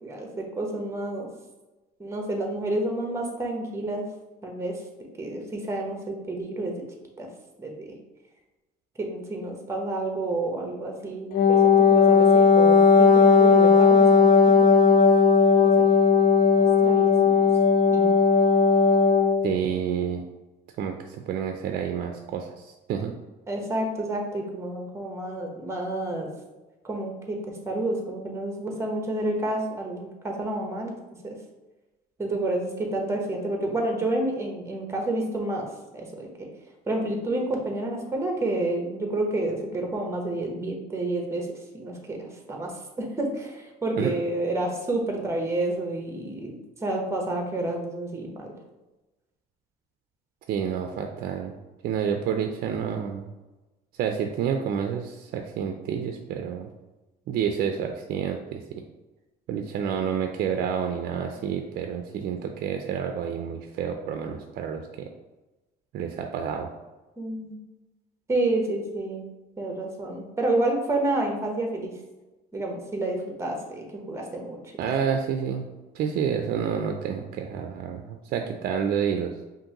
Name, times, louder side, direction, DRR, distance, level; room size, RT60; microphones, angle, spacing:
voice 1, 0.0-1.3 2.0-4.0 4.4-4.7 5.2-6.7 7.2-7.3 7.6-8.0 9.0-14.3 14.6-15.0 15.6-15.9 16.6-17.1 17.9-18.1 23.5-26.3 26.8-30.9 31.2-31.4 32.2-35.7 35.9-36.5 36.9-41.5 41.7-42.7 43.0-48.5 67.2-67.6 68.3-69.3 69.6-71.9 72.5-74.6, right 2 dB, 15° right, 1 dB, 0.9 m, -29 dB
Wind instrument woodwind instrument, 11.3-19.5, left 5 dB, 55° left, 0.4 m, -17 dB
voice 2, 19.4-20.2 20.8-23.1 44.0-44.1 50.5-51.5 51.8-53.3 54.0-56.7 57.3-58.8 59.5-65.1 65.9-66.7 74.8-75.7 75.9-79.3, right 7 dB, 65° right, 4 dB, 0.4 m, -29 dB
5.2 x 2.6 x 2.9 m, 1.1 s
cardioid pair, 110°, 17 cm